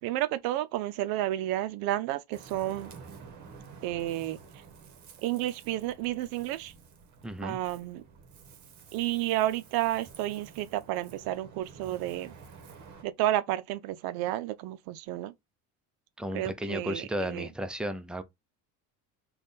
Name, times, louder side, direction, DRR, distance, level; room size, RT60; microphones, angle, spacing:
voice 1, 0.0-2.9 3.8-4.4 5.2-6.7 7.4-8.0 8.9-12.3 13.0-15.3 16.3-17.5, right 14 dB, 70° right, 0.5 m, -31 dB
Ocean, 2.3-13.0, right 5 dB, 50° right, 1.0 m, -51 dB
voice 2, 7.2-7.6 16.2-18.2, equal, ahead, 0.5 m, -34 dB
3.5 x 2.3 x 4.0 m
cardioid pair, 105°, 38 cm